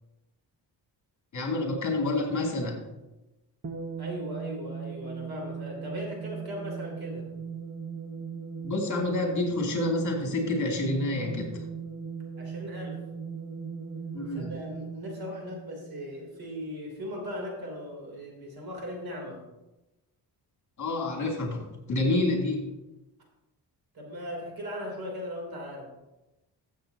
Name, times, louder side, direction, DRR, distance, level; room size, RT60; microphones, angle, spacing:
voice 1, 1.3-2.8 8.6-11.6 14.1-14.5 20.8-22.7, left 2 dB, 45° left, 0 dB, 2.5 m, -28 dB
sound 1, 3.6-16.5, right 6 dB, 30° right, 1.1 m, -38 dB
voice 2, 4.0-7.3 12.4-13.0 14.3-19.4 23.9-25.9, equal, 60° right, 0 dB, 3.2 m, -38 dB
13.5 x 7.7 x 2.8 m, 1.0 s
cardioid pair, 120°, 42 cm